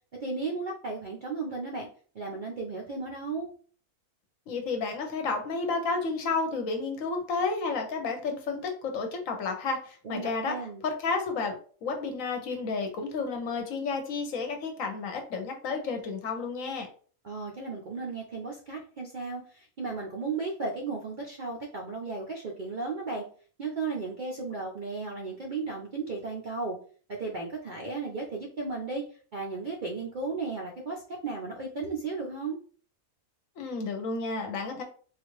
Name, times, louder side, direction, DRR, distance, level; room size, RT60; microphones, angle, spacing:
voice 1, 0.2-1.9 2.1-3.5 10.0-10.9 17.2-23.3 23.6-26.8 27.1-32.6, right 4 dB, 55° right, -2 dB, 0.5 m, -35 dB
voice 2, 4.5-11.5 11.8-16.9 33.6-34.8, left 4 dB, 70° left, 4 dB, 1.1 m, -31 dB
3.7 x 2.4 x 3.1 m, 0.43 s
omnidirectional pair, 1.5 m